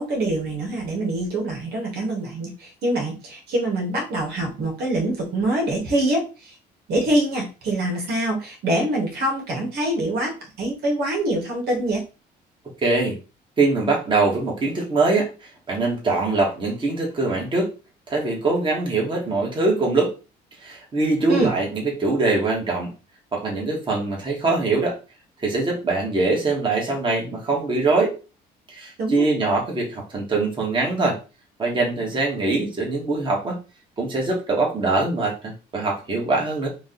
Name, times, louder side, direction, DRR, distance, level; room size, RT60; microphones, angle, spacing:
voice 1, 0.0-6.6 6.9-12.0 21.1-21.5 29.0-29.3, right 1 dB, 70° right, 0 dB, 1.7 m, -25 dB
voice 2, 12.8-13.2 13.6-15.3 15.7-17.7 18.1-20.1 20.6-22.9 23.3-25.0 25.4-28.1 28.7-31.2 31.6-33.6 34.0-36.7, right 3 dB, 30° right, -2 dB, 1.8 m, -23 dB
3.9 x 2.6 x 3.9 m, 0.31 s
cardioid pair, 110°, 17 cm